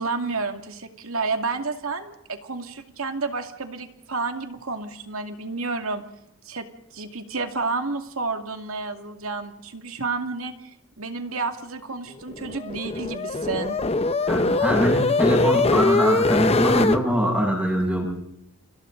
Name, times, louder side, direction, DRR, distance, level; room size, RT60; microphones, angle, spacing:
voice 1, 0.0-6.0 6.4-6.7 6.9-13.8, right 4 dB, 75° right, 6 dB, 2.4 m, -30 dB
sound 1, 12.3-17.0, left 3 dB, 30° left, 0.8 m, -22 dB
voice 2, 14.3-18.0, equal, 5° right, -1 dB, 7.6 m, -23 dB
30.0 x 25.5 x 3.9 m, 0.82 s
head